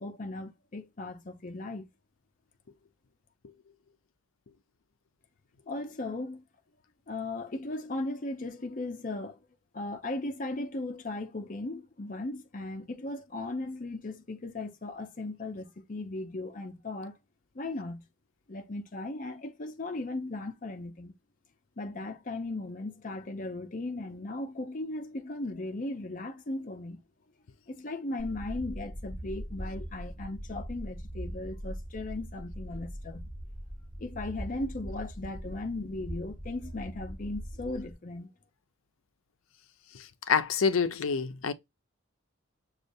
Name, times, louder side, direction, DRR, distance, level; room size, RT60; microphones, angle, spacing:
voice 1, 0.0-1.8 5.7-6.4 7.1-9.4 9.7-17.2 17.5-18.1 18.5-21.1 21.8-27.0 27.7-33.3 34.0-38.3, left 2 dB, 40° left, 0.6 m, -37 dB
sound 1, 28.2-37.9, equal, 10° right, 1.4 m, -41 dB
voice 2, 40.3-41.5, left 5 dB, 80° left, 0.5 m, -26 dB
6.4 x 2.4 x 2.6 m
head